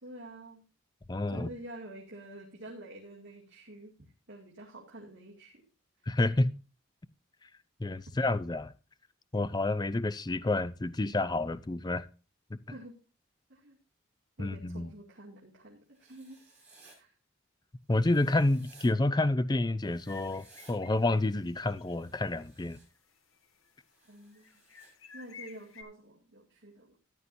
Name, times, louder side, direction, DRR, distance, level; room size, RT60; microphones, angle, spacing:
voice 1, 0.0-0.6 1.3-3.9 4.3-5.6 12.7-13.0 13.5-13.8 14.4-16.4 17.0-17.1 24.1-24.5 25.1-27.0, right 1 dB, 60° right, 2.3 m, -48 dB
voice 2, 1.1-1.5 6.1-6.5 7.8-8.7 9.3-12.1 14.4-14.9 17.9-22.8, left 2 dB, 20° left, 0.5 m, -29 dB
Writing, 15.9-17.0 17.9-18.9 19.8-20.7 21.8-22.8 23.9-24.9, right 3 dB, 5° right, 5.5 m, -59 dB
sound 1, 20.0-22.0 22.3-22.4 22.9-23.7 24.3-25.8, left 6 dB, 85° left, 1.5 m, -52 dB
14.0 x 10.0 x 2.7 m
head